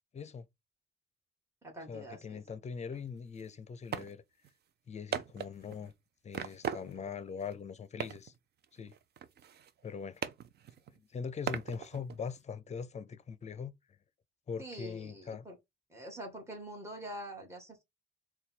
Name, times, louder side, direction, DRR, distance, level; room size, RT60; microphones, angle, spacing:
voice 1, 0.1-0.5 1.9-4.2 4.9-5.9 6.2-8.3 8.7-8.9 9.8-10.2 11.0-13.7 14.5-15.5, left 6 dB, 35° left, 0.6 m, -41 dB
voice 2, 1.6-2.4 14.6-15.5 15.9-17.8, right 1 dB, 15° right, 1.8 m, -45 dB
sound 1, 2.9-3.0 3.4-3.5 3.9-4.1 4.4-4.5 5.1-5.9 6.3-7.2 7.4-7.5 8.0-8.4 8.6-9.9 10.2-11.0 11.5-12.4, right 8 dB, 55° right, 0.5 m, -39 dB
4.0 x 2.4 x 4.2 m
cardioid pair, 90°, 20 cm